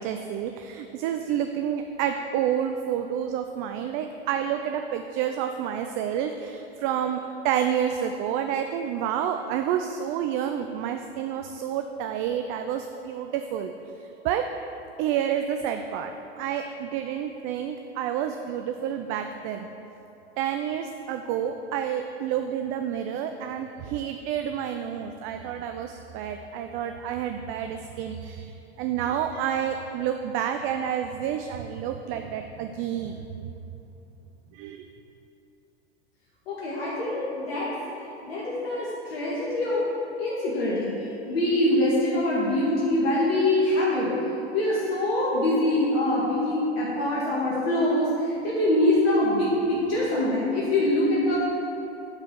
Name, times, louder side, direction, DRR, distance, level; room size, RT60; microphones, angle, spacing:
voice 1, 0.0-13.7 14.2-14.5 15.0-16.1 16.4-19.7 20.4-33.2 34.5-34.8, right 9 dB, 40° right, 6 dB, 0.5 m, -29 dB
voice 2, 36.5-37.7 38.2-39.8 40.2-44.1 44.5-51.4, left 1 dB, 65° left, -7 dB, 1.9 m, -24 dB
9.4 x 4.3 x 6.3 m, 2.9 s
figure-of-eight pair, 85°, 32 cm